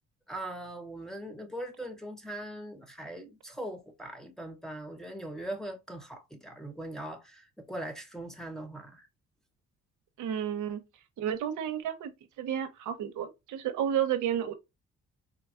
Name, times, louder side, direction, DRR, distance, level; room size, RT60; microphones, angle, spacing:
voice 1, 0.3-9.1, right 1 dB, ahead, 0.8 m, -40 dB
voice 2, 10.2-10.8 11.2-12.1 12.4-14.5, right 9 dB, 80° right, 0.7 m, -31 dB
4.1 x 2.2 x 2.4 m
cardioid pair, 90°, 30 cm